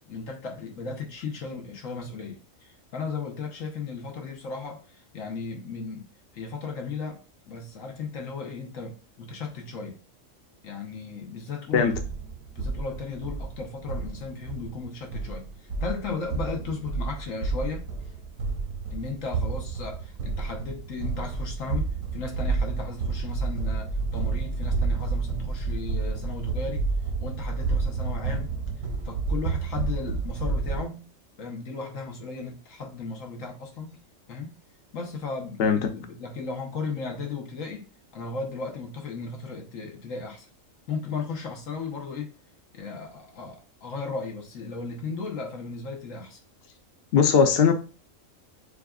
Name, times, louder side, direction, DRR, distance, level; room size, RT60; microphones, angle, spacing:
voice 1, 0.1-10.0 10.6-11.9 12.5-17.9 18.9-26.9 27.2-28.5 29.0-31.1 31.4-34.0 34.3-34.6 34.9-40.5 40.9-42.3 42.7-46.4, left 4 dB, 75° left, 1.4 m, -36 dB
sound 1, 11.7-30.8, right 4 dB, 90° right, 1.3 m, -30 dB
voice 2, 47.1-47.7, left 6 dB, 55° left, 0.8 m, -19 dB
6.6 x 2.5 x 2.3 m
omnidirectional pair, 1.4 m